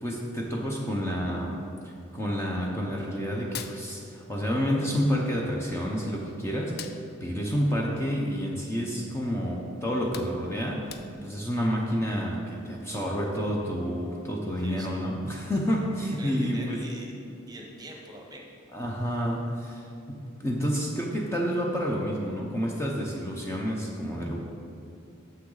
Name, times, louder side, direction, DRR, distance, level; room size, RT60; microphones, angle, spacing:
voice 1, 0.0-1.6 1.8-10.8 11.2-16.8 18.7-24.4, equal, 15° left, -2 dB, 0.7 m, -29 dB
Hands, 3.4-4.6 4.9-6.2 6.6-8.9 9.3-9.5 9.8-11.5, left 8 dB, 50° left, 0.4 m, -44 dB
voice 2, 14.6-15.1 16.2-17.1 17.5-18.4, right 1 dB, 20° right, 0 dB, 1.0 m, -43 dB
9.2 x 7.0 x 3.9 m, 2.5 s
head